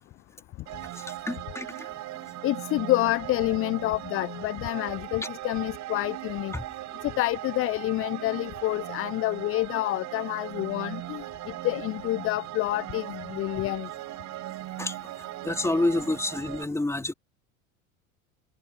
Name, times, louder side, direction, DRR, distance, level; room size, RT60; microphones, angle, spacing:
sound 1, 0.7-16.6, right 15 dB, 40° right, 6.0 m, -39 dB
voice 1, 0.9-1.9 6.5-6.6 14.8-15.0 15.4-17.1, left 2 dB, 5° left, 2.9 m, -28 dB
voice 2, 2.4-6.5 7.0-11.2 11.6-13.9, left 18 dB, 30° left, 0.7 m, -28 dB
figure-of-eight pair, 75°, 42 cm